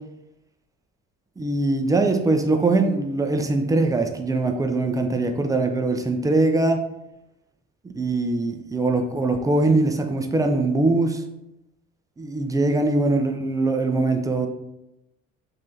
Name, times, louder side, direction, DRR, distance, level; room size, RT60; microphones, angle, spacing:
voice 1, 1.4-6.8 7.9-11.2 12.2-14.5, right 2 dB, 10° right, 5 dB, 0.4 m, -22 dB
5.2 x 3.1 x 2.6 m, 0.89 s
figure-of-eight pair, 50°, 42 cm